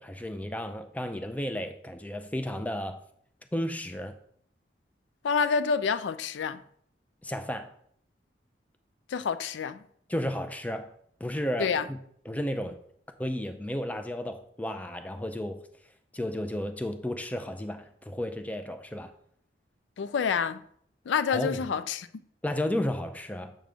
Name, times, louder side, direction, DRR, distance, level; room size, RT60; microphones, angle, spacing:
voice 1, 0.0-3.0 3.5-4.1 7.2-7.7 10.1-10.9 11.2-12.0 12.3-12.8 13.2-15.6 16.1-19.1 21.3-21.6 22.4-23.5, left 1 dB, 10° left, 0.4 m, -33 dB
voice 2, 5.2-6.6 9.1-9.8 11.6-11.9 20.0-20.6 21.1-22.1, left 6 dB, 90° left, 0.4 m, -28 dB
7.6 x 3.4 x 5.0 m
head